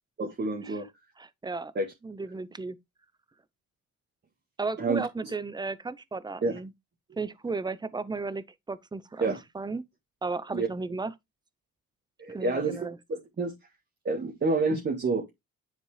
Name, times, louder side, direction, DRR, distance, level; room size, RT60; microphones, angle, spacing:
voice 1, 0.2-0.9 1.7-1.9 4.8-5.3 6.4-6.6 9.2-9.4 10.5-10.7 12.2-13.5 14.0-15.3, right 3 dB, 35° right, 1.7 m, -29 dB
voice 2, 1.2-1.7 2.0-2.8 4.6-6.7 7.2-9.8 10.2-11.1 12.3-13.0, right 3 dB, 15° right, 0.7 m, -34 dB
10.0 x 4.2 x 3.3 m
cardioid pair, 90°, 30 cm